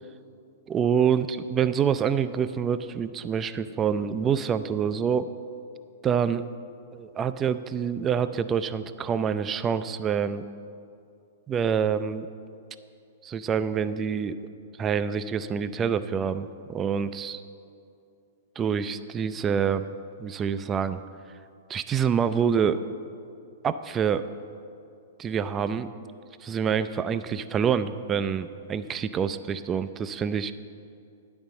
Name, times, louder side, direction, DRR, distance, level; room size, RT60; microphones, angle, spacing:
voice 1, 0.7-5.3 6.0-6.4 6.9-10.4 11.5-12.3 13.2-14.5 14.8-17.4 18.6-19.9 20.2-21.0 21.7-22.8 23.6-24.2 25.2-25.9 26.4-30.5, right 7 dB, 25° right, 13 dB, 0.3 m, -26 dB
9.4 x 5.3 x 7.4 m, 2.5 s
hypercardioid pair, 115°, 0 cm